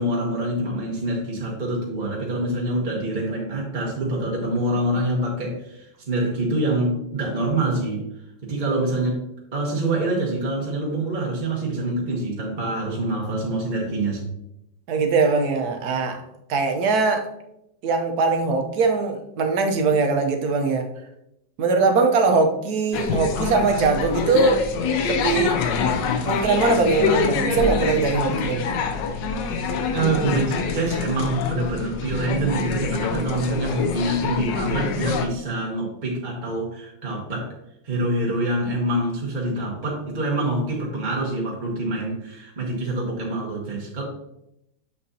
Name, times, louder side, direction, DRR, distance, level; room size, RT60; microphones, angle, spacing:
voice 1, 0.0-8.0 8.4-9.2 9.5-14.3 29.9-37.5 37.8-44.0, right 1 dB, 30° right, 1.3 m, -25 dB
voice 2, 14.9-17.3 17.8-20.9 21.6-24.7 25.0-25.6 26.2-28.7, right 4 dB, 65° right, 1.3 m, -21 dB
sound 1, 22.9-35.3, left 5 dB, 90° left, 1.4 m, -25 dB
7.1 x 6.4 x 2.8 m
omnidirectional pair, 1.9 m